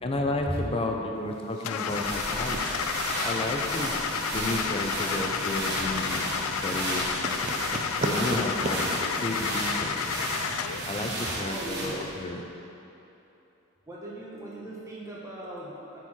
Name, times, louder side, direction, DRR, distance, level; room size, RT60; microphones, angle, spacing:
voice 1, 0.0-2.6 3.2-4.0 4.3-6.3 6.6-7.2 8.0-9.9 10.9-12.4, left 2 dB, 25° left, 2 dB, 0.5 m, -32 dB
voice 2, 0.5-1.0 11.4-11.9 13.9-16.0, right 1 dB, 15° right, -6 dB, 1.0 m, -38 dB
Car / Engine starting, 1.6-10.9, left 7 dB, 80° left, 0.3 m, -31 dB
sound 1, 1.6-12.2, right 1 dB, 50° right, 1.2 m, -34 dB
sound 2, 1.8-11.5, right 2 dB, 35° right, 0.5 m, -38 dB
8.1 x 4.6 x 4.3 m, 2.9 s
head